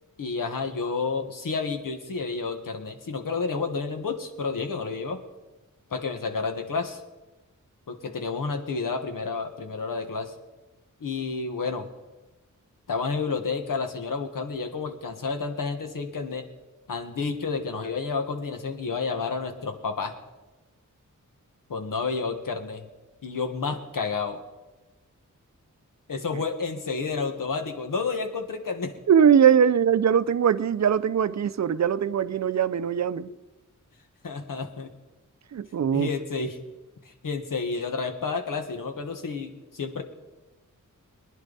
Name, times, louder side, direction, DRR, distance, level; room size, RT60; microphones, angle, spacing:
voice 1, 0.2-5.2 5.9-7.0 7.9-10.3 11.0-11.9 12.9-16.5 16.9-20.2 21.7-22.9 23.2-24.4 26.1-28.9 34.2-34.9 35.9-36.5 37.0-40.0, left 4 dB, 90° left, 6 dB, 1.5 m, -30 dB
voice 2, 29.1-33.3 35.5-36.1, right 8 dB, 60° right, 15 dB, 0.5 m, -21 dB
23.0 x 10.0 x 4.1 m, 1.1 s
wide cardioid pair, 115°, 32 cm